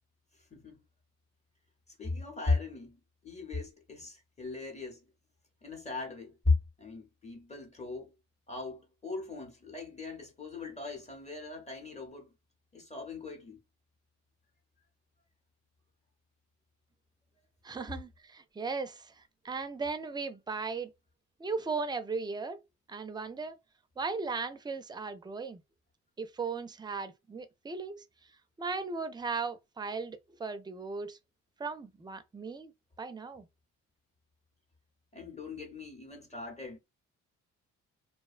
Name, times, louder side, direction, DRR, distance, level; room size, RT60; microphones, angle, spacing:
voice 1, 0.3-0.8 2.0-3.0 3.2-5.0 5.6-8.1 8.5-12.3 12.7-13.6 35.1-36.8, left 3 dB, 20° left, 0.8 m, -36 dB
voice 2, 17.6-20.9 21.4-22.6 22.9-23.6 24.0-25.6 26.2-28.0 28.6-31.2 31.6-32.7 33.0-33.5, right 4 dB, 15° right, 0.4 m, -37 dB
2.5 x 2.1 x 2.4 m
cardioid pair, 90°, 30 cm